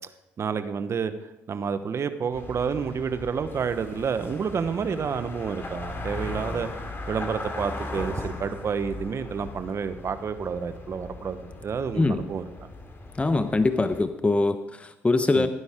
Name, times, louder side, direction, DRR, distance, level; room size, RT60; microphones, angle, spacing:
voice 1, 0.4-1.1 1.5-6.7 7.1-12.4 15.3-15.5, right 6 dB, 50° right, 11 dB, 1.1 m, -29 dB
sound 1, 2.3-14.0, left 2 dB, 35° left, 2.7 m, -38 dB
voice 2, 13.2-15.5, left 3 dB, 20° left, 10 dB, 0.9 m, -23 dB
17.0 x 9.7 x 3.7 m, 1.0 s
hypercardioid pair, 55°, 6 cm